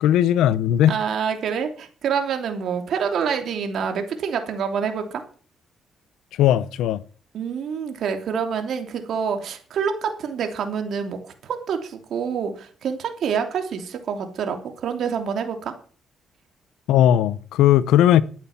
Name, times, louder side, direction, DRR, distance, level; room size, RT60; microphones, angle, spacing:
voice 1, 0.0-1.0 6.4-7.0 16.9-18.2, left 11 dB, 90° left, 0.8 m, -17 dB
voice 2, 0.9-5.2 7.3-15.7, right 7 dB, 65° right, 3.1 m, -27 dB
12.5 x 9.0 x 7.3 m
cardioid pair, 90°, 0 cm